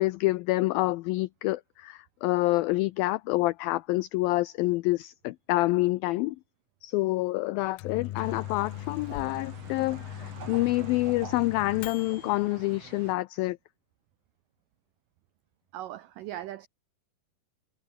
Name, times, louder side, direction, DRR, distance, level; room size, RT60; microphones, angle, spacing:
voice 1, 0.0-6.4 6.8-13.6, left 20 dB, 90° left, 2.0 m, -27 dB
Microwave oven, 7.5-12.4, left 15 dB, 70° left, 2.5 m, -40 dB
sound 1, 8.2-13.1, right 6 dB, 40° right, 4.0 m, -46 dB
voice 2, 15.7-16.7, right 13 dB, 85° right, 1.9 m, -39 dB
omnidirectional pair, 4.8 m